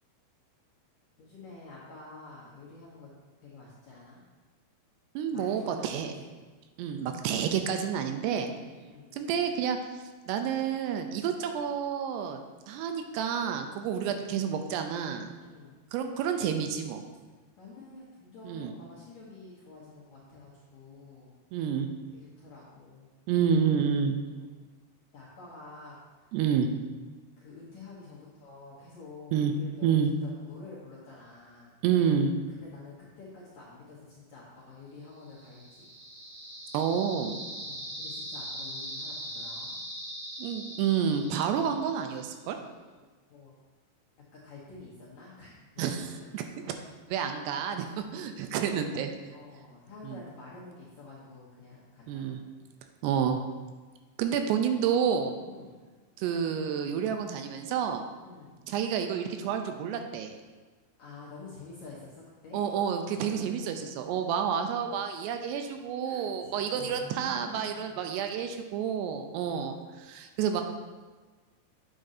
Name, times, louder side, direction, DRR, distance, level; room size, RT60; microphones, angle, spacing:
voice 1, 1.2-3.1 3.4-4.2 5.3-6.3 8.4-9.2 13.9-14.2 15.4-15.7 17.6-21.3 22.1-23.1 24.2-24.7 25.1-26.2 27.4-31.7 32.5-35.9 37.6-39.8 42.9-43.5 44.3-46.4 49.3-52.4 55.4-55.7 58.2-58.5 61.0-62.6 63.1-63.4 66.0-68.0 69.3-69.7, left 3 dB, 65° left, -7 dB, 1.9 m, -49 dB
voice 2, 5.2-6.1 6.8-8.5 9.1-9.8 10.3-12.4 12.7-15.3 15.9-17.0 18.4-18.7 21.5-21.9 23.3-24.2 26.3-26.7 29.3-29.5 29.8-30.1 31.8-32.3 36.7-37.4 40.4-42.6 45.8-46.8 47.1-49.1 50.0-50.2 52.1-52.4 53.0-53.4 54.2-55.4 56.2-58.1 58.7-60.3 62.5-70.6, right 7 dB, 85° right, 6 dB, 2.6 m, -29 dB
sound 1, 35.3-42.2, equal, 35° right, 2.9 m, -41 dB
8.7 x 7.6 x 2.7 m, 1.3 s
omnidirectional pair, 4.9 m